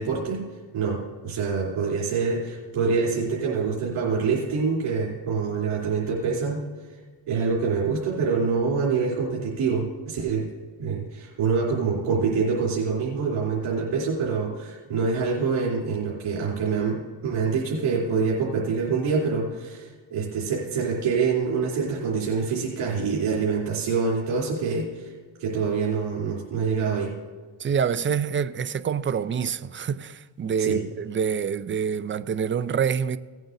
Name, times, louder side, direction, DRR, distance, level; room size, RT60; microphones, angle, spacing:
voice 1, 0.0-7.0 7.3-10.5 10.8-25.1 25.4-27.2 30.6-30.8, right 5 dB, 75° right, 3.5 m, -26 dB
voice 2, 27.6-33.2, right 7 dB, 25° right, 0.4 m, -26 dB
18.0 x 9.2 x 2.7 m
cardioid pair, 85°, 50 cm